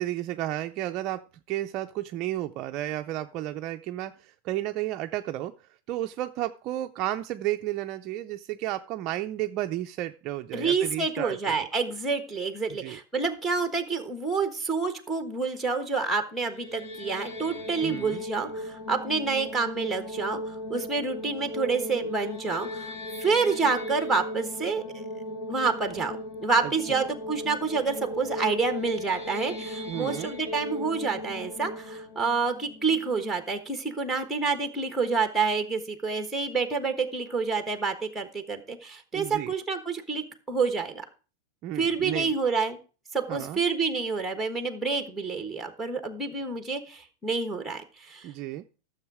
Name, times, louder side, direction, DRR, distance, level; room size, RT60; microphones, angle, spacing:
voice 1, 0.0-11.5 12.8-13.0 17.8-18.2 26.6-27.0 29.9-30.3 39.1-39.5 41.6-42.3 43.3-43.6 48.2-48.6, right 14 dB, 35° right, 6 dB, 0.5 m, -32 dB
voice 2, 10.5-22.9 23.2-25.0 25.5-41.1 41.8-42.8 43.1-48.3, right 4 dB, ahead, 7 dB, 1.3 m, -28 dB
sound 1, 16.4-33.5, left 1 dB, 55° left, 2.2 m, -37 dB
13.0 x 7.1 x 4.8 m, 0.36 s
supercardioid pair, 165°, 0 cm